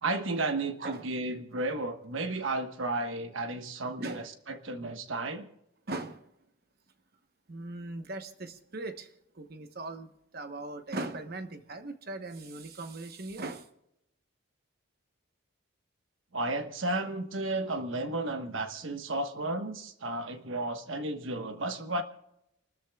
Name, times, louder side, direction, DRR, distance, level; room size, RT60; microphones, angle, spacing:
voice 1, 0.0-5.5 16.3-22.0, right 2 dB, 65° right, 1.3 m, -33 dB
voice 2, 5.9-6.2 7.5-9.1 9.3-10.1 10.3-13.6, right 2 dB, 45° right, 1.1 m, -39 dB
29.5 x 13.5 x 2.3 m
head